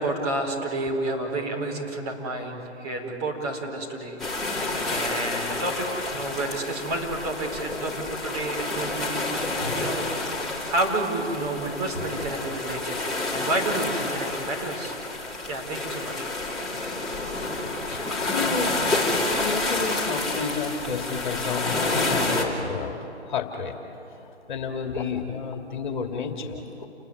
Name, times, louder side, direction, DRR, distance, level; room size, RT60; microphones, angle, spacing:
voice 1, 0.0-10.1 10.6-13.0 13.3-14.9 15.5-16.2, right 2 dB, 25° right, 1 dB, 4.4 m, -30 dB
sound 1, 4.2-22.4, left 2 dB, ahead, 2.9 m, -29 dB
voice 2, 17.9-18.7 19.4-23.7 24.5-26.9, left 5 dB, 45° left, 4 dB, 2.5 m, -31 dB
29.5 x 20.0 x 9.5 m, 2.8 s
figure-of-eight pair, 145°, 34 cm